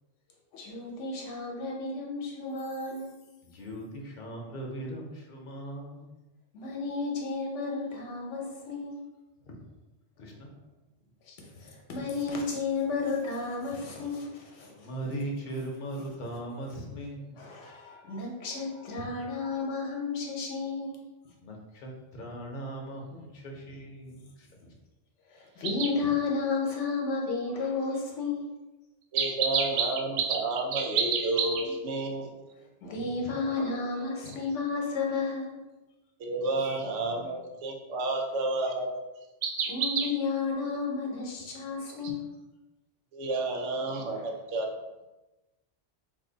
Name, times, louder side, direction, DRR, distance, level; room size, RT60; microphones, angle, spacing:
voice 1, 0.5-3.1 6.5-9.0 11.2-14.9 17.4-21.0 25.3-28.4 32.8-35.6 39.7-42.3 44.1-44.4, left 4 dB, 85° left, 0 dB, 1.1 m, -32 dB
voice 2, 3.4-6.0 10.2-10.5 14.7-17.4 21.4-24.5, right 1 dB, 50° left, 0 dB, 0.8 m, -39 dB
voice 3, 29.1-32.3 36.2-39.0 39.4-40.1 43.1-44.7, right 3 dB, 80° right, 2 dB, 0.9 m, -29 dB
2.7 x 2.6 x 3.8 m, 1.1 s
omnidirectional pair, 1.2 m